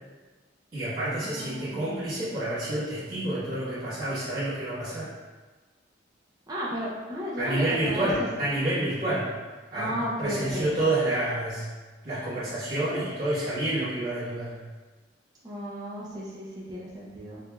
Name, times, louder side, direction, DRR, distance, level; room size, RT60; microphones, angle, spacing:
voice 1, 0.7-5.1 7.4-9.3 9.7-9.9 10.2-11.7 12.0-14.5, right 1 dB, 50° right, -12 dB, 1.3 m, -28 dB
voice 2, 1.2-2.0 6.5-8.3 9.7-10.7 15.4-17.4, equal, 20° right, -7 dB, 0.6 m, -34 dB
4.6 x 2.7 x 2.3 m, 1.3 s
head